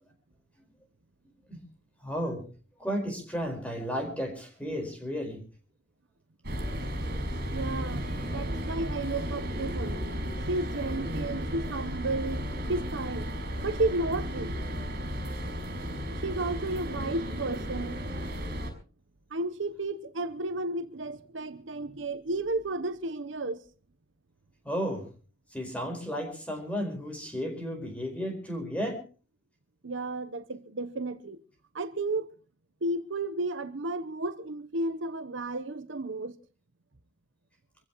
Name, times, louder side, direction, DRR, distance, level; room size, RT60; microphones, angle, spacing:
voice 1, 2.0-2.4 2.8-5.4 24.6-25.0 25.5-29.0, equal, 5° left, 4.6 m, -33 dB
sound 1, 6.4-18.7, equal, 55° right, 6.1 m, -34 dB
voice 2, 7.5-10.0 10.5-12.4 12.7-13.3 13.6-14.5 16.2-18.0 19.3-23.6 29.8-31.4 31.7-32.3 32.8-36.4, right 2 dB, 75° right, 0.9 m, -32 dB
25.5 x 15.5 x 3.0 m
head